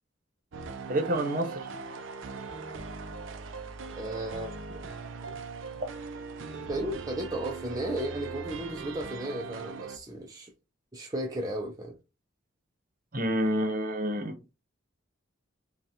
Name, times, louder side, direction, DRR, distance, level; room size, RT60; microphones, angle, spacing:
sound 1, 0.5-10.0, right 4 dB, 75° right, 0.5 m, -40 dB
voice 1, 0.9-1.6 13.1-14.4, right 1 dB, 45° right, 0.9 m, -28 dB
voice 2, 4.0-4.5 5.2-5.4 6.7-10.5 10.9-12.0, right 1 dB, 20° right, 0.5 m, -34 dB
5.4 x 2.3 x 2.8 m
head